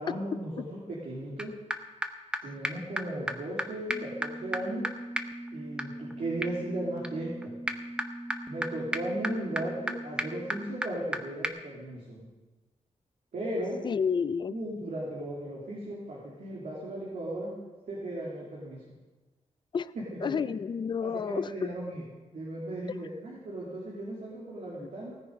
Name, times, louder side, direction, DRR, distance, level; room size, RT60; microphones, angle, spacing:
voice 1, 0.0-1.6 2.4-4.9 5.5-7.6 8.5-12.3 13.3-13.8 14.5-17.6 17.9-18.8 20.1-20.4 21.0-22.0 22.3-25.2, right 1 dB, 85° right, -5 dB, 2.8 m, -36 dB
sound 1, 1.4-1.5 1.7-1.8 2.0-2.1 2.3-2.4 2.6-2.7 3.0-3.1 3.3-3.4 3.6-3.7 3.9-11.2 11.4-11.5, right 1 dB, 10° right, 0.7 m, -35 dB
voice 2, 13.8-14.6 19.7-19.9 20.2-21.7 24.8-24.9, left 6 dB, 40° left, 16 dB, 0.4 m, -30 dB
17.0 x 9.8 x 5.1 m, 1.2 s
wide cardioid pair, 170°, 12 cm